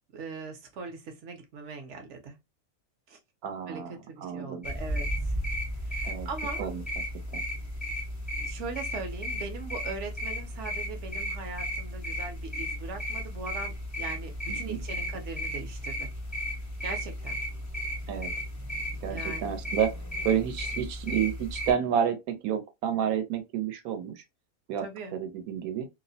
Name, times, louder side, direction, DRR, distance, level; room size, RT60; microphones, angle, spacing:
voice 1, 0.1-2.4 3.1-3.2 3.7-5.4 5.8-6.7 8.4-16.1 16.8-17.4 19.1-19.5 24.8-25.2, right 4 dB, 65° right, 0.9 m, -40 dB
voice 2, 3.4-4.7 6.0-6.3 6.6-6.8 7.3-7.4 14.5-14.8 18.1-18.3 19.0-19.9 20.2-24.2 24.7-24.8 25.1-25.9, right 8 dB, 85° right, 1.1 m, -30 dB
sound 1, 4.6-21.7, equal, 25° left, 0.4 m, -34 dB
2.6 x 2.0 x 2.6 m
omnidirectional pair, 1.5 m